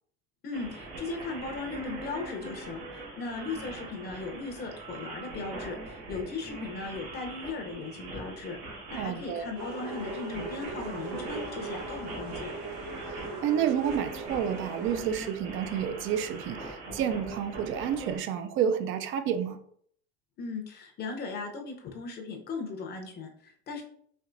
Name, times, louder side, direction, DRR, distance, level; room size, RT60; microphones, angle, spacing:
voice 1, 0.4-12.5 20.4-23.8, left 4 dB, 35° left, 3 dB, 0.8 m, -38 dB
sound 1, 0.5-18.2, right 2 dB, 90° right, 1.5 m, -42 dB
voice 2, 9.0-9.5 13.4-19.6, right 8 dB, 45° right, 9 dB, 0.4 m, -30 dB
sound 2, 9.6-15.0, right 2 dB, 60° right, 1.0 m, -39 dB
4.4 x 2.9 x 2.5 m, 0.64 s
supercardioid pair, 130°, 30 cm